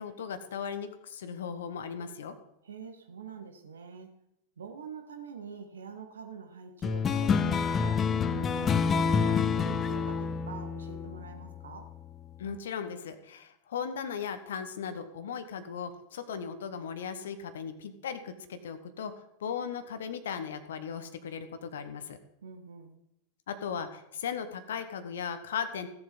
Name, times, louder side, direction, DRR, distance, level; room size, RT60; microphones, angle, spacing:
voice 1, 0.0-2.3 12.4-22.2 23.5-25.9, left 7 dB, 60° left, 10 dB, 1.1 m, -37 dB
voice 2, 2.6-4.2 4.6-11.9 22.4-23.0, right 5 dB, 70° right, 6 dB, 1.6 m, -45 dB
sound 1, 6.8-11.7, left 6 dB, 20° left, 0.7 m, -28 dB
16.0 x 7.1 x 5.4 m, 0.80 s
figure-of-eight pair, 90°, 0 cm